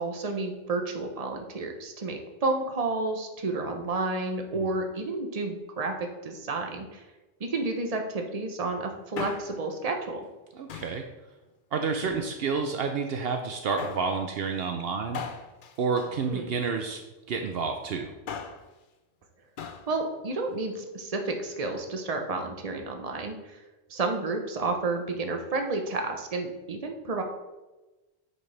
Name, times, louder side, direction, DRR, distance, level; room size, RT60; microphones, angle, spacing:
voice 1, 0.0-7.0 7.4-10.3 16.2-16.5 19.9-23.6 23.9-27.2, right 3 dB, 35° right, 4 dB, 1.0 m, -31 dB
Male speech man speaking, 8.9-9.7 10.7-11.1 11.9-12.7 13.8-14.2 15.1-16.8 18.1-18.7 19.6-19.9 20.2-20.3, left 7 dB, 55° left, 0.8 m, -40 dB
voice 2, 10.6-11.0 11.7-15.2 15.8-17.0 17.3-18.1, right 5 dB, 70° right, 4 dB, 0.9 m, -29 dB
8.7 x 6.5 x 3.3 m, 1.1 s
omnidirectional pair, 1.1 m